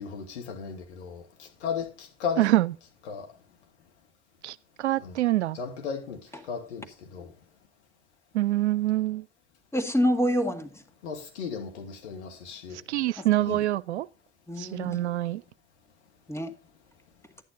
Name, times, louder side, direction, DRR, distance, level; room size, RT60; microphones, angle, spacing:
voice 1, 0.0-2.4 3.1-3.3 5.0-5.2 5.5-6.2 6.5-7.3 11.0-12.8 13.4-13.5, left 6 dB, 80° left, 2.5 m, -35 dB
voice 2, 2.4-2.7 4.4-5.6 8.3-9.3 12.9-14.1 14.6-15.4, right 15 dB, 85° right, 0.5 m, -25 dB
voice 3, 9.7-10.8 13.5-13.6 14.5-15.0 16.3-16.5, equal, 10° left, 2.0 m, -27 dB
11.0 x 9.2 x 3.9 m
hypercardioid pair, 60°, 33 cm